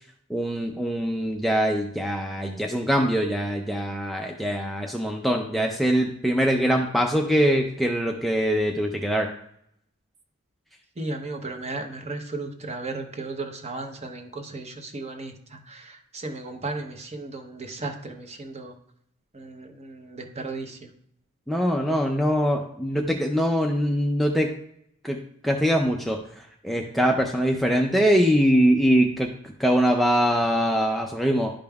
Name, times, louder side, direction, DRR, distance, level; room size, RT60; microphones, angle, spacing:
voice 1, 0.3-9.3 21.5-24.5 25.0-26.2 26.6-29.3 29.6-31.5, equal, ahead, 1 dB, 0.3 m, -23 dB
voice 2, 11.0-18.7 19.3-20.8, right 3 dB, 30° right, 5 dB, 0.7 m, -35 dB
11.5 x 5.1 x 2.3 m, 0.72 s
head